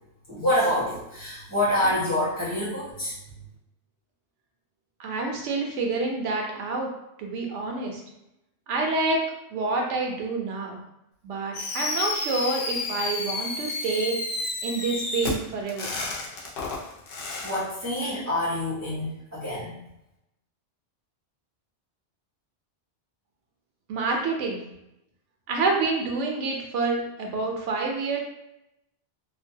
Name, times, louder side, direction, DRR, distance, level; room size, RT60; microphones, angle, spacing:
voice 1, 0.3-3.1 17.4-19.7, left 1 dB, 20° right, -11 dB, 0.6 m, -26 dB
voice 2, 5.0-6.9 7.2-8.0 8.7-9.2 9.5-10.8 11.2-14.1 14.6-16.0 23.9-24.6 25.5-28.2, right 3 dB, 90° right, 1 dB, 1.0 m, -28 dB
Fireworks, 11.5-17.6, left 3 dB, 60° left, 0.7 m, -31 dB
2.6 x 2.2 x 2.6 m, 0.84 s
omnidirectional pair, 1.2 m